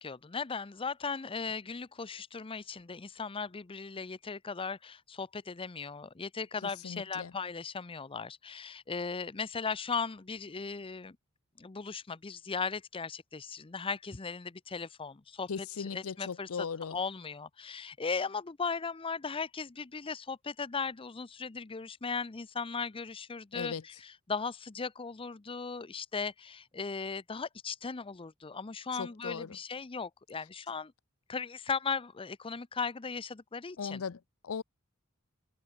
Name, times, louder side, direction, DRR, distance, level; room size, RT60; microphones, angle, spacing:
voice 1, 0.0-11.2 11.6-30.9 31.3-34.0, left 5 dB, 25° left, 0.6 m, -37 dB
voice 2, 6.6-7.3 15.5-17.0 23.5-23.8 28.9-29.6 33.8-34.6, left 6 dB, 75° left, 0.6 m, -38 dB
head